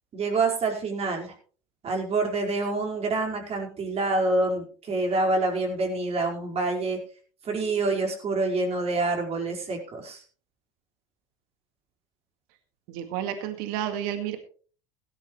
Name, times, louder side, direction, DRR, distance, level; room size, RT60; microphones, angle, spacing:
voice 1, 0.1-1.3 1.8-7.0 7.4-10.2, right 3 dB, 40° right, 1 dB, 4.9 m, -27 dB
voice 2, 12.9-14.4, right 10 dB, 65° right, 8 dB, 2.0 m, -31 dB
17.0 x 12.5 x 3.2 m, 0.41 s
hypercardioid pair, 80°, 16 cm